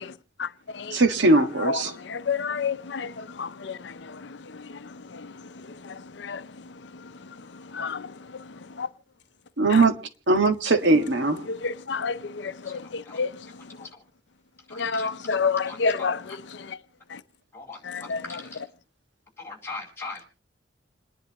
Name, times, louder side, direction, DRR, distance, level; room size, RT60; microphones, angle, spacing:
voice 1, 0.9-1.9 9.6-9.9 10.3-11.4, right 3 dB, 85° right, 1.6 m, -20 dB
voice 2, 1.6-8.9 9.7-9.9 11.5-13.8 14.7-16.8 17.1-17.2 17.8-18.4, left 5 dB, 70° left, 0.6 m, -31 dB
voice 3, 12.6-13.2 13.8-14.0 14.7-16.1 17.5-18.6 19.4-20.2, left 3 dB, 15° left, 4.4 m, -41 dB
28.5 x 10.5 x 2.9 m
head